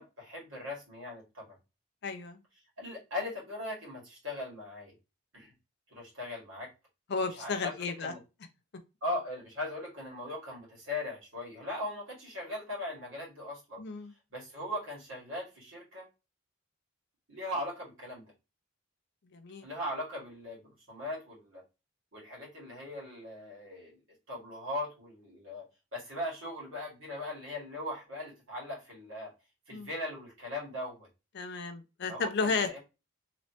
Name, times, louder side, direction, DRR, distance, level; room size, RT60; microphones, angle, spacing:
voice 1, 0.0-1.6 2.8-4.9 5.3-5.5 5.9-6.7 7.4-8.2 9.0-13.8 14.3-16.1 17.3-18.3 19.6-21.6 22.1-24.0 24.3-29.3 29.7-31.1 32.1-32.8, left 1 dB, 60° right, 2.0 m, -39 dB
voice 2, 2.0-2.4 7.1-8.1 13.8-14.1 19.3-19.7 29.7-29.9 31.3-32.8, left 4 dB, 50° left, 0.5 m, -33 dB
3.1 x 3.0 x 2.8 m
head